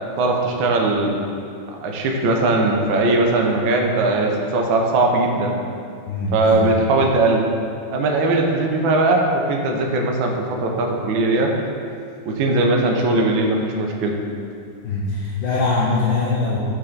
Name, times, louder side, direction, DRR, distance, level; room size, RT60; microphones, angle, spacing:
voice 1, 0.2-1.2 1.8-5.5 6.3-7.4 7.9-11.5 12.3-14.1, right 2 dB, 80° right, 1 dB, 1.4 m, -19 dB
voice 2, 6.1-6.7 14.8-16.6, left 3 dB, 70° left, -5 dB, 1.4 m, -22 dB
6.3 x 4.4 x 3.8 m, 2.5 s
omnidirectional pair, 2.2 m